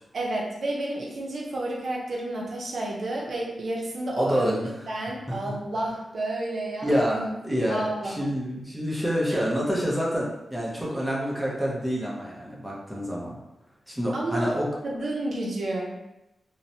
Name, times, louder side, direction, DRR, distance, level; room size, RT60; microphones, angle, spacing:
voice 1, 0.1-8.3 14.1-14.6 14.8-16.0, right 1 dB, 60° right, -3 dB, 0.5 m, -31 dB
voice 2, 4.1-4.7 5.3-5.5 6.8-13.3 13.9-14.7, equal, ahead, -5 dB, 0.6 m, -27 dB
2.9 x 2.1 x 2.6 m, 0.92 s
wide cardioid pair, 135°, 0 cm